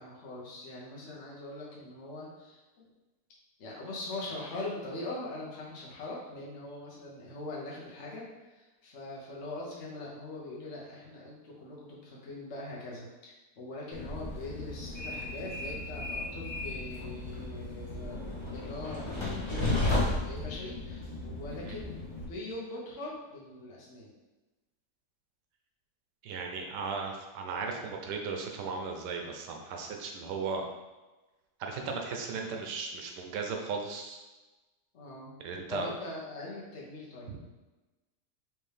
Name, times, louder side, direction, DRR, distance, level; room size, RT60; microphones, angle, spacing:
voice 1, 0.0-2.9 3.6-24.1 34.9-35.3 35.7-37.4, left 2 dB, 50° left, -5 dB, 1.2 m, -42 dB
Train, 13.9-22.3, left 2 dB, 30° left, 0.5 m, -34 dB
voice 2, 26.2-30.6 31.6-34.2 35.4-35.9 37.3-37.4, right 4 dB, 90° right, 3 dB, 1.3 m, -36 dB
4.4 x 3.4 x 3.3 m, 1.1 s
omnidirectional pair, 1.8 m